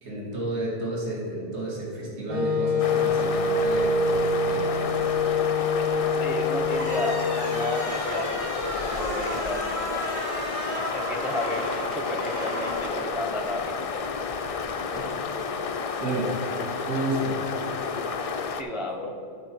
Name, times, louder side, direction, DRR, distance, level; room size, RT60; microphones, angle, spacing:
voice 1, 0.0-4.7 14.9-15.3 16.0-16.3 16.9-17.4, right 1 dB, 65° right, -4 dB, 2.1 m, -31 dB
Wind instrument woodwind instrument, 2.3-8.0, left 3 dB, 30° right, 0.9 m, -25 dB
sound 1, 2.8-18.6, left 5 dB, 70° left, 0.3 m, -31 dB
voice 2, 6.2-10.0 10.9-14.0 18.5-19.2, left 1 dB, ahead, 2 dB, 0.5 m, -33 dB
sound 2, 6.6-13.6, equal, 85° right, 2.3 m, -34 dB
9.7 x 4.5 x 6.0 m, 2.5 s
omnidirectional pair, 1.2 m